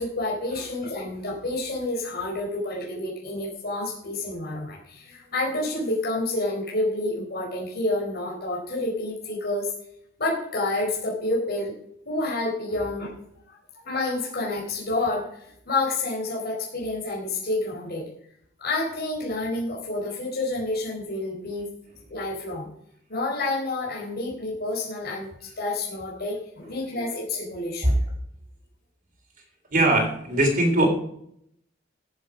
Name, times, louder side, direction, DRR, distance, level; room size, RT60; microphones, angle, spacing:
voice 1, 0.0-9.7 10.2-11.7 12.1-13.1 13.7-18.1 18.6-21.7 22.1-22.7 23.1-27.9, left 2 dB, 55° left, -4 dB, 4.3 m, -29 dB
voice 2, 29.7-30.9, right 1 dB, 45° right, 2 dB, 3.5 m, -20 dB
15.5 x 7.6 x 5.1 m, 0.69 s
head